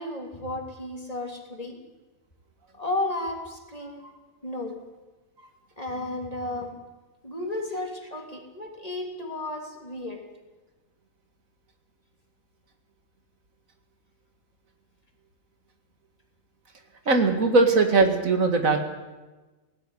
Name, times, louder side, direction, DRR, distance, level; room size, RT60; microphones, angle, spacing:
voice 1, 0.0-1.8 2.7-4.0 4.4-4.8 5.8-6.7 7.2-10.2, left 2 dB, 25° left, 2 dB, 3.2 m, -33 dB
voice 2, 17.1-18.8, right 3 dB, 80° right, 6 dB, 2.5 m, -20 dB
18.0 x 16.0 x 9.9 m, 1.2 s
omnidirectional pair, 1.4 m